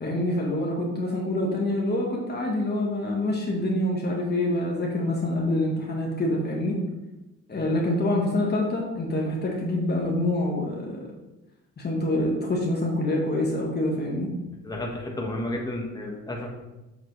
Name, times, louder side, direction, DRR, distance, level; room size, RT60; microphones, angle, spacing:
voice 1, 0.0-6.8 7.5-11.1 11.8-14.3, left 1 dB, 35° left, -2 dB, 1.4 m, -26 dB
voice 2, 14.6-16.5, left 1 dB, 15° left, -1 dB, 1.5 m, -32 dB
7.4 x 5.8 x 3.2 m, 1.0 s
cardioid pair, 90°, 30 cm